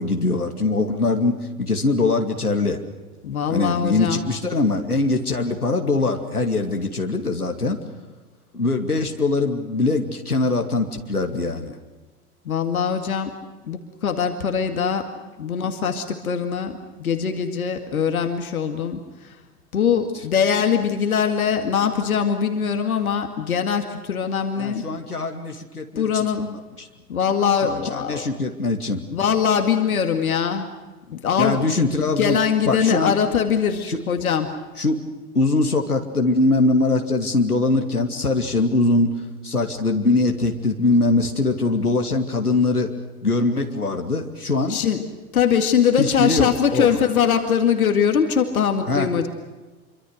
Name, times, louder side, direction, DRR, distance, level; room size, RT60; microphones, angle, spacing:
voice 1, 0.0-1.3 1.6-2.8 3.5-7.8 8.5-11.7 24.6-26.5 26.8-26.9 27.6-29.0 31.4-32.4 32.6-33.1 33.9-34.0 34.8-35.0 35.3-39.2 39.4-42.9 43.2-44.8 46.0-46.9 48.9-49.1, left 2 dB, 85° left, 3 dB, 2.6 m, -22 dB
voice 2, 3.2-4.2 12.5-13.3 13.6-15.1 15.4-19.4 19.7-24.8 26.0-26.5 27.1-28.3 29.1-30.7 31.1-34.5 44.7-45.0 45.3-49.3, left 7 dB, 70° left, 6 dB, 2.3 m, -22 dB
27.0 x 24.5 x 6.6 m, 1.2 s
figure-of-eight pair, 90°, 44 cm